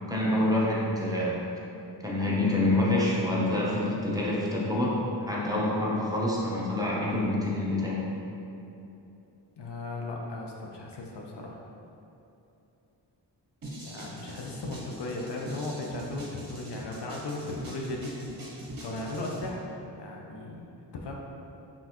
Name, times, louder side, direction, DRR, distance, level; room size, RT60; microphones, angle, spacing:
voice 1, 0.1-1.4 2.0-8.0, left 1 dB, 10° right, -6 dB, 0.7 m, -27 dB
voice 2, 9.6-11.6 13.8-18.2 18.8-19.7 19.9-21.1, left 2 dB, 65° left, -1 dB, 0.6 m, -37 dB
sound 1, 13.6-19.5, right 1 dB, 50° right, 0.9 m, -42 dB
3.9 x 3.6 x 2.9 m, 2.9 s
wide cardioid pair, 70°, 45 cm